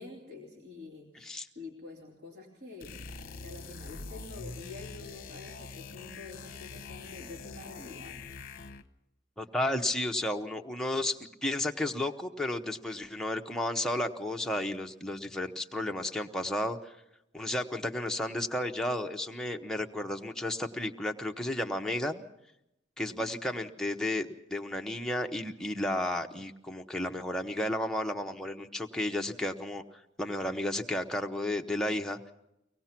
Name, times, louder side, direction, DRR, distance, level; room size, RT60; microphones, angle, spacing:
voice 1, 0.0-3.0 3.4-8.2 23.2-23.6, left 3 dB, 55° right, -1 dB, 3.1 m, -47 dB
voice 2, 1.1-1.5 9.4-16.9 17.3-22.2 23.0-29.8 30.2-32.3, left 1 dB, 5° left, 2 dB, 0.9 m, -33 dB
sound 1, 2.8-8.9, left 4 dB, 50° left, 0.9 m, -44 dB
24.0 x 18.5 x 5.9 m, 0.86 s
head